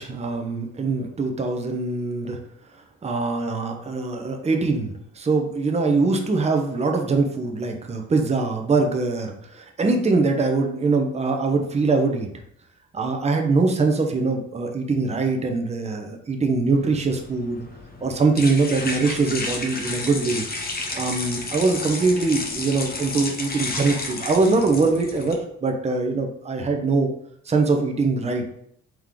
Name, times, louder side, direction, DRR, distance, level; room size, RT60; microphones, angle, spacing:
voice 1, 0.0-2.4 3.0-12.3 12.9-17.6 18.0-20.5 20.9-27.1 27.5-28.4, right 3 dB, 20° right, 3 dB, 0.6 m, -23 dB
sound 1, 16.7-25.3, left 3 dB, 30° left, 0.8 m, -32 dB
3.6 x 3.0 x 3.6 m, 0.70 s
cardioid pair, 90°, 30 cm